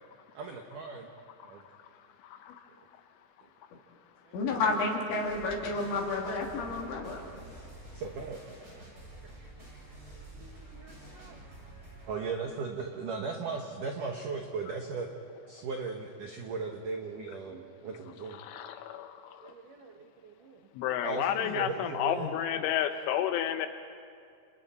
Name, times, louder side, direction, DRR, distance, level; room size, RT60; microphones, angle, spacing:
voice 1, 0.4-1.1 1.4-1.6 2.8-2.9 4.3-4.4 6.8-7.4 7.9-8.4 10.4-11.4 12.0-15.1 15.5-18.4 19.4-20.6 21.0-22.3, right 4 dB, 85° right, 2 dB, 1.8 m, -38 dB
voice 2, 4.3-7.2, left 3 dB, 65° left, 0 dB, 4.9 m, -30 dB
sound 1, 5.2-12.1, right 2 dB, 20° right, 6.5 m, -49 dB
voice 3, 18.4-19.2 20.8-23.7, left 10 dB, 80° left, 8 dB, 3.0 m, -30 dB
30.0 x 29.0 x 4.4 m, 2.4 s
omnidirectional pair, 5.9 m